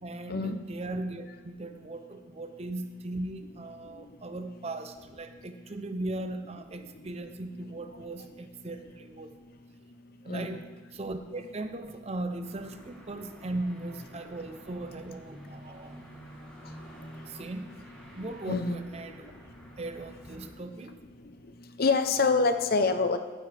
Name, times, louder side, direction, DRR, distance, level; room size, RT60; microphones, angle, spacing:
voice 1, 0.0-9.3 10.2-10.7 10.9-16.2 17.3-17.8 18.2-19.3 19.8-21.0, right 2 dB, 30° right, 8 dB, 0.6 m, -38 dB
voice 2, 10.3-10.6 18.5-18.8 21.8-23.2, left 4 dB, 45° left, 8 dB, 0.6 m, -25 dB
sound 1, 12.4-20.5, equal, 5° left, 2.4 m, -50 dB
15.5 x 8.5 x 3.4 m, 1.4 s
head